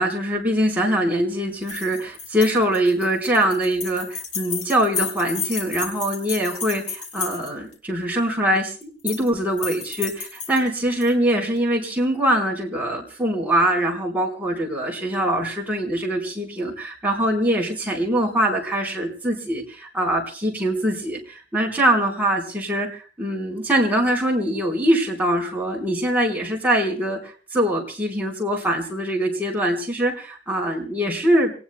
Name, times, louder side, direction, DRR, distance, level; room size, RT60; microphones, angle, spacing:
voice 1, 0.0-31.5, right 1 dB, 10° right, -2 dB, 4.4 m, -23 dB
sound 1, 1.6-7.7 8.8-9.3 9.6-11.1, left 6 dB, 45° left, 3.9 m, -32 dB
27.0 x 19.0 x 2.3 m, 0.38 s
head